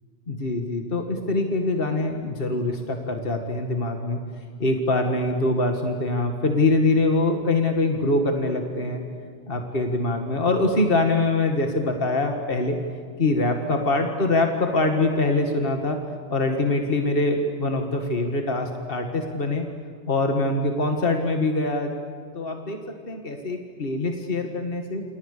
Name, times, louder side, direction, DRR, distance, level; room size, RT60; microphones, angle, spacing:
voice 1, 0.3-4.2 4.6-9.0 9.5-12.8 13.2-16.0 16.3-19.7 20.1-21.9 22.3-25.0, left 2 dB, 55° left, 4 dB, 2.2 m, -24 dB
29.0 x 28.5 x 6.8 m, 2.2 s
omnidirectional pair, 1.1 m